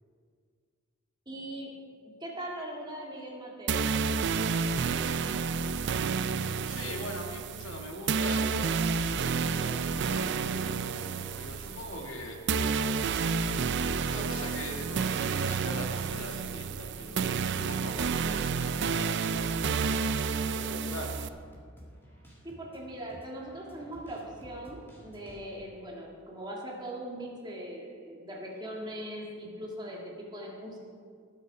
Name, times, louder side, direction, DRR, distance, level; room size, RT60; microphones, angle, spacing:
voice 1, 1.3-1.8 2.2-4.3 22.4-30.8, right 1 dB, 20° right, -2 dB, 1.9 m, -40 dB
sound 1, 3.7-21.3, right 5 dB, 50° right, 0.4 m, -30 dB
voice 2, 5.6-6.3 6.6-12.4 14.0-19.5 20.1-21.1, left 1 dB, 65° left, 2 dB, 1.5 m, -42 dB
sound 2, 10.2-25.6, right 1 dB, 10° left, 2.1 m, -53 dB
19.5 x 6.8 x 4.9 m, 2.1 s
head